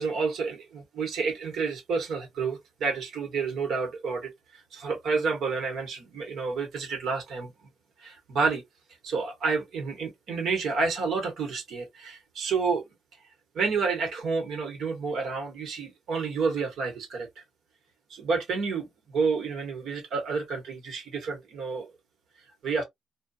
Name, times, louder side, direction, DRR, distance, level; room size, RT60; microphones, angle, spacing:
voice 1, 0.0-7.5 8.0-8.6 9.0-12.8 13.5-17.4 18.1-18.9 19.1-21.9 22.6-22.8, right 4 dB, 70° right, 1.0 m, -29 dB
2.7 x 2.2 x 2.3 m
cardioid pair, 90°, 0 cm